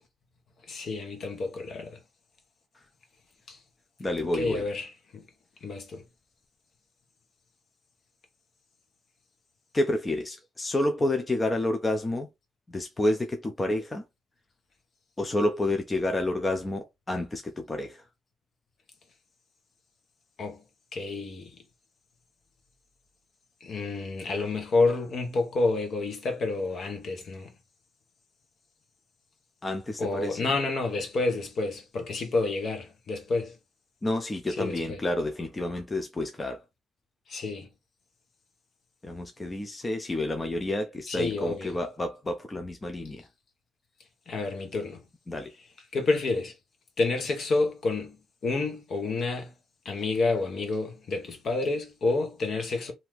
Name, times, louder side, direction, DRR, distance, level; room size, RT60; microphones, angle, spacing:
voice 1, 0.7-2.0 3.5-3.6 4.3-5.2 5.6-6.0 20.4-20.6 20.9-21.5 23.6-27.5 30.0-33.5 34.6-35.0 37.3-37.7 41.1-41.7 44.3-45.0 45.9-46.5 47.0-48.2 48.4-49.5 49.8-52.9, left 3 dB, 55° left, 1.0 m, -29 dB
voice 2, 4.0-4.6 9.7-12.3 12.7-14.0 15.2-18.0 29.6-30.5 34.0-36.6 39.0-43.3 45.3-45.5, left 1 dB, 20° left, 0.5 m, -29 dB
2.8 x 2.5 x 3.2 m
cardioid pair, 90°, 0 cm